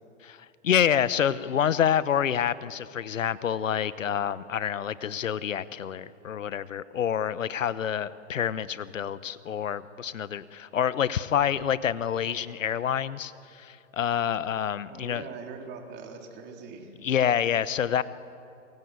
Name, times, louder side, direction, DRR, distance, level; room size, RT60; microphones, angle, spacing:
voice 1, 0.2-15.3 17.0-18.0, left 9 dB, 85° left, 16 dB, 1.1 m, -27 dB
voice 2, 14.8-16.9, right 5 dB, 30° right, 2 dB, 3.8 m, -42 dB
28.5 x 23.0 x 8.2 m, 2.6 s
hypercardioid pair, 135°, 38 cm